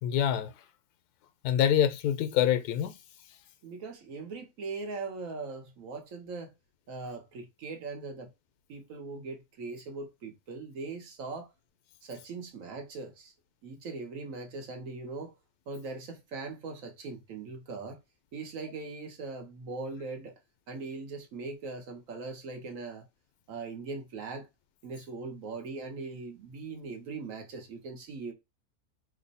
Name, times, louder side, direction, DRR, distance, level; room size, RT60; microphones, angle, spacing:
voice 1, 0.0-0.5 1.4-3.0, left 10 dB, 90° left, 1.1 m, -25 dB
voice 2, 3.6-6.5 6.9-8.3 8.7-11.5 12.0-13.3 13.6-15.3 15.7-18.0 18.3-20.4 20.7-23.0 23.5-24.5 24.8-28.3, right 3 dB, 65° right, 1.1 m, -40 dB
3.0 x 2.1 x 4.0 m
omnidirectional pair, 1.6 m